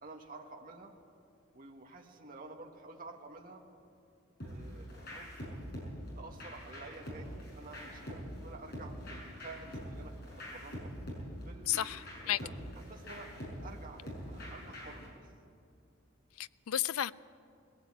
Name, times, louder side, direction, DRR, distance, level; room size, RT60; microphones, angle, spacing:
voice 1, 0.0-0.9 1.5-3.6 4.4-5.7 6.1-10.9 11.4-13.3 13.6-15.2, right 3 dB, 40° right, 1.5 m, -51 dB
sound 1, 4.4-15.1, equal, 50° left, 6.3 m, -44 dB
voice 2, 11.7-12.0 12.3-12.4 16.4-17.1, left 12 dB, 85° left, 0.4 m, -32 dB
20.0 x 16.0 x 8.7 m
head